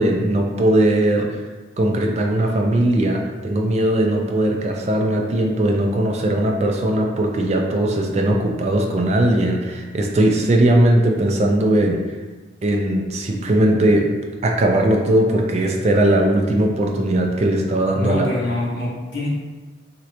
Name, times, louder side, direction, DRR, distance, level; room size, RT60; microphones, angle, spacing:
voice 1, 0.0-1.4 1.8-12.0 12.6-14.1 14.4-18.3, right 1 dB, 35° right, 1 dB, 0.3 m, -19 dB
voice 2, 17.9-19.3, left 1 dB, 65° left, -7 dB, 1.0 m, -25 dB
3.1 x 2.5 x 2.9 m, 1.3 s
head